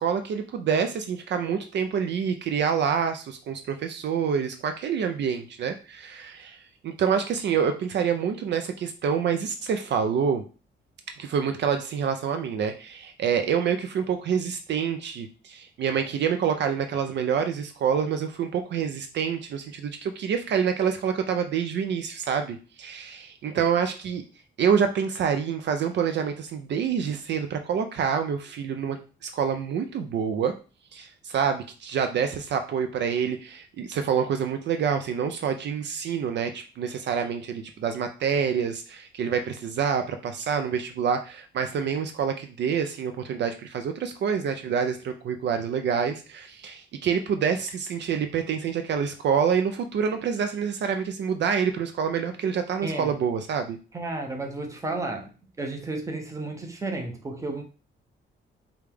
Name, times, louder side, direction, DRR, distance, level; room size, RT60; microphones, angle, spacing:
voice 1, 0.0-10.4 11.2-24.2 24.6-30.5 30.9-53.8, right 7 dB, 60° right, 7 dB, 0.5 m, -27 dB
voice 2, 52.8-53.1 53.9-55.3 55.6-57.6, right 2 dB, 15° right, 3 dB, 0.7 m, -32 dB
4.9 x 2.3 x 3.4 m, 0.35 s
cardioid pair, 140°, 20 cm